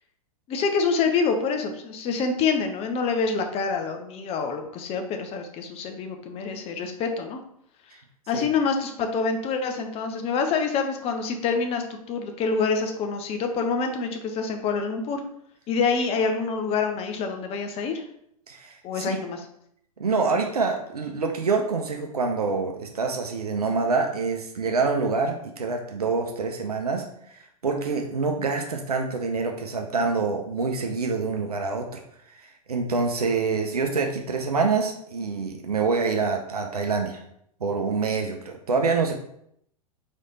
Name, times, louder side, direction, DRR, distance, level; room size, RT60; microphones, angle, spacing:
voice 1, 0.5-7.4 8.3-15.2 15.7-18.0 18.8-19.4, left 5 dB, 30° left, 5 dB, 0.7 m, -26 dB
voice 2, 18.5-19.2 20.0-27.0 27.6-32.0 32.4-37.2 37.6-39.1, right 4 dB, 85° right, 3 dB, 0.6 m, -26 dB
4.2 x 3.3 x 3.9 m, 0.72 s
figure-of-eight pair, 100°, 19 cm